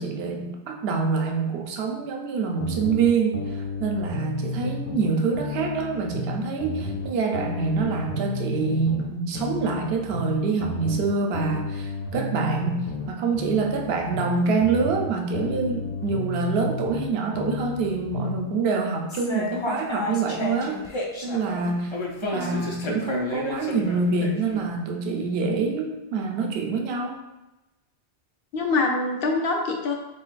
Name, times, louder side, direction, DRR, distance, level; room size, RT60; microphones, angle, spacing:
voice 1, 0.0-20.8 21.2-21.9 22.2-27.2, right 4 dB, 65° right, 2 dB, 0.8 m, -26 dB
sound 1, 2.6-5.1 5.3-9.1 9.3-13.1 13.3-17.1 17.3-18.4, left 2 dB, 80° left, 1.3 m, -32 dB
sound 2, 19.1-24.7, left 2 dB, 45° left, 0.3 m, -31 dB
voice 2, 22.3-22.7 28.5-29.9, left 3 dB, 60° left, 2 dB, 0.8 m, -25 dB
3.9 x 3.7 x 2.4 m, 1.0 s
omnidirectional pair, 1.2 m